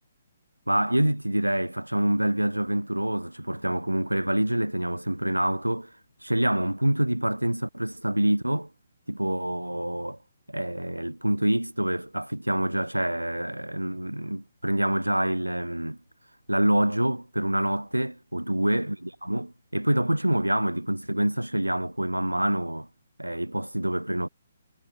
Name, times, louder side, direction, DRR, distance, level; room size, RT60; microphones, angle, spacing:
voice 1, 0.7-5.9 6.2-8.7 9.1-10.2 10.5-16.0 16.5-22.9 23.2-24.3, right 1 dB, 85° right, 0.3 m, -26 dB
figure-of-eight pair, 135°, 0 cm